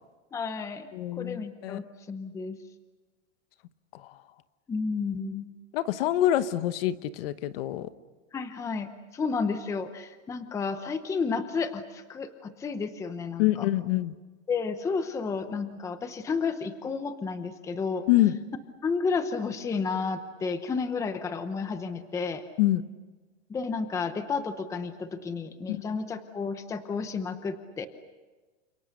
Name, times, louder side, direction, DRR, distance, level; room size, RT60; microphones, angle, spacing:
voice 1, 0.3-2.6 4.7-5.5 8.3-13.7 14.5-18.1 18.8-22.4 23.5-27.9, left 5 dB, 10° left, 10 dB, 0.8 m, -32 dB
voice 2, 0.9-1.8 3.9-4.2 5.7-7.9 13.4-14.2 18.1-18.4 22.6-22.8 25.7-25.9, left 14 dB, 50° left, 13 dB, 1.1 m, -26 dB
29.5 x 26.5 x 6.6 m, 1.3 s
supercardioid pair, 160°, 37 cm